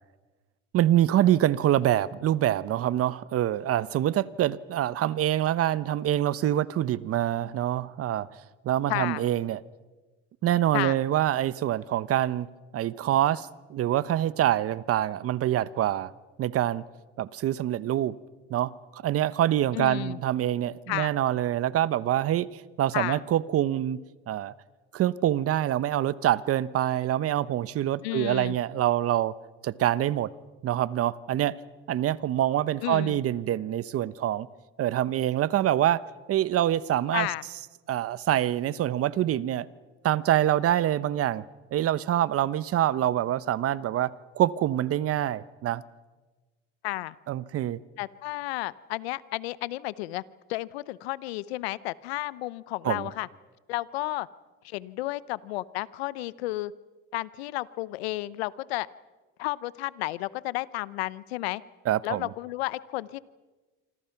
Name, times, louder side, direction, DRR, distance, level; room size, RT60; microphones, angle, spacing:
voice 1, 0.7-8.3 8.6-9.6 10.4-12.5 12.7-16.1 16.4-16.8 17.2-18.1 18.5-24.0 24.3-24.5 24.9-29.3 29.6-30.3 30.6-31.6 31.9-34.5 34.8-36.0 36.3-37.3 37.9-39.7 40.0-41.4 41.7-45.8 47.3-47.8 52.8-53.1 61.9-62.3, right 12 dB, 50° right, 1.0 m, -25 dB
voice 2, 8.9-9.3 10.7-10.9 19.7-20.2 20.9-21.2 22.9-23.2 28.0-28.6 32.8-33.2 37.1-37.4 46.8-47.1 48.0-50.2 50.5-53.3 53.7-54.3 54.6-56.7 57.1-58.9 59.4-61.6 62.0-63.2, left 19 dB, 90° left, 0.8 m, -32 dB
27.0 x 26.0 x 5.9 m
supercardioid pair, 90°, 30 cm